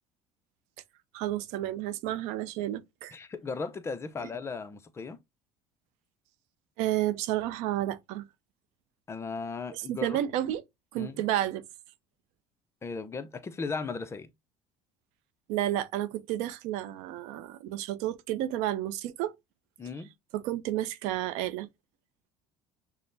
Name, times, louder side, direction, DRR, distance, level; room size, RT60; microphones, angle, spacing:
voice 1, 1.1-3.1 6.8-8.3 9.7-10.6 10.9-11.7 15.5-19.3 20.3-21.7, right 13 dB, 80° right, 0.4 m, -31 dB
voice 2, 3.1-5.2 9.1-10.2 11.0-11.3 12.8-14.3 19.8-20.1, left 4 dB, 25° left, 0.5 m, -36 dB
6.1 x 2.0 x 2.6 m
cardioid pair, 120°, 12 cm